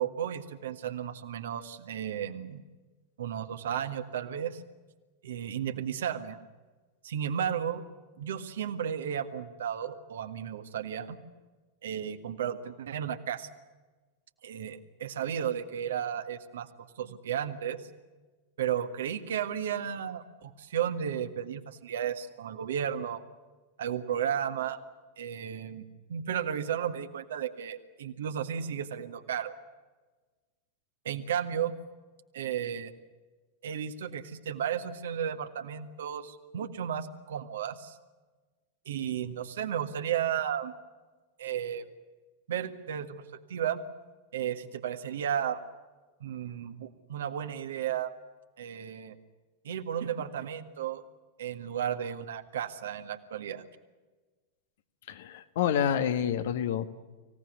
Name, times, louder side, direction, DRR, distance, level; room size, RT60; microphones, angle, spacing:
voice 1, 0.0-2.6 3.2-4.6 5.2-6.4 7.0-7.8 8.2-11.2 11.8-13.5 14.4-16.7 17.0-17.8 18.6-23.2 23.8-24.8 25.2-29.5 31.0-31.7 32.3-32.9 33.6-38.0 38.8-40.7 41.4-41.9 42.5-43.8 44.3-45.6 46.2-48.1 48.6-49.1 49.6-51.0 51.4-53.6, right 9 dB, 60° right, 8 dB, 1.7 m, -33 dB
voice 2, 55.1-56.8, left 9 dB, 55° left, 10 dB, 1.5 m, -28 dB
25.0 x 17.5 x 9.5 m, 1.3 s
figure-of-eight pair, 90°, 0 cm